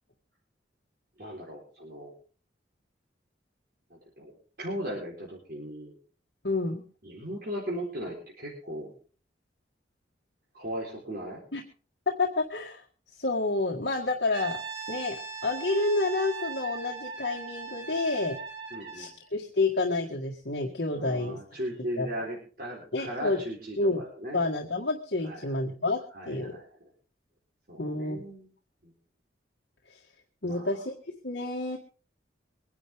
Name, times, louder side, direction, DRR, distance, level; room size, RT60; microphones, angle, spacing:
voice 1, 1.2-2.1 4.2-5.9 7.0-8.9 10.5-11.4 18.7-19.1 20.9-24.4 25.2-25.5 26.1-26.7 27.7-28.5 28.8-28.9 30.4-30.8, equal, 55° right, -4 dB, 4.2 m, -37 dB
voice 2, 6.4-6.8 11.5-11.6 12.2-12.8 13.2-14.6 14.9-15.2 15.4-18.4 18.9-21.4 22.0-22.2 22.9-23.4 23.8-24.0 24.3-26.0 26.3-26.6 27.8-28.2 30.4-31.8, left 2 dB, 65° left, 1 dB, 1.7 m, -29 dB
Brass instrument, 14.3-19.2, right 5 dB, 70° right, 2.6 m, -39 dB
24.0 x 10.5 x 3.6 m, 0.39 s
head